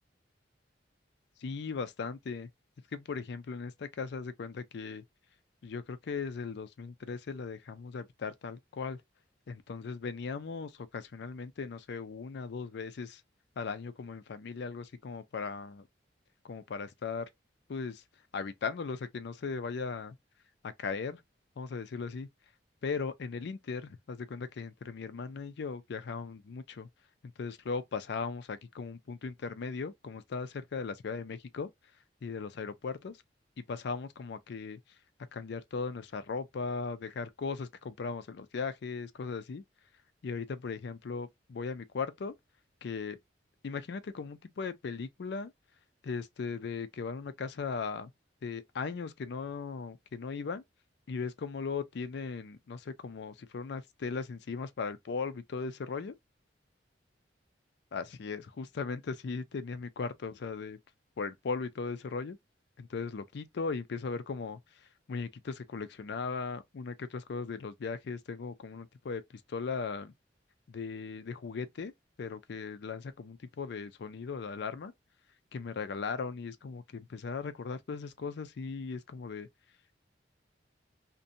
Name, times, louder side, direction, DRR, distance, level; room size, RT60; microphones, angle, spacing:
voice 1, 1.4-2.5 2.9-5.0 5.6-9.0 9.5-13.2 13.6-15.9 16.4-17.3 17.7-18.0 18.3-20.2 20.6-21.2 21.6-22.3 22.8-26.9 27.2-31.7 32.2-33.2 33.7-34.8 35.3-39.6 40.2-42.3 42.8-43.2 43.6-45.5 46.0-48.1 48.4-50.6 51.1-56.1 57.9-60.8 61.2-62.4 62.8-70.1 70.7-71.9 72.2-74.9 75.5-79.5, left 5 dB, 65° left, 0.4 m, -38 dB
2.6 x 2.2 x 2.6 m
head